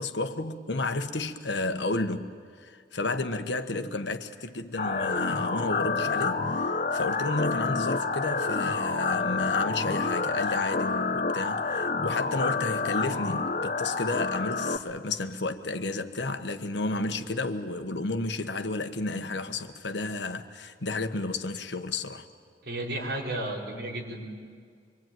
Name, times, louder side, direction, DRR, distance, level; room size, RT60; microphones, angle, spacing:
voice 1, 0.0-22.3, left 2 dB, 80° left, 1.4 m, -32 dB
sound 1, 4.8-14.8, left 4 dB, 45° left, 1.0 m, -28 dB
voice 2, 22.6-24.3, right 1 dB, 65° right, 5.1 m, -33 dB
25.0 x 24.5 x 9.3 m
head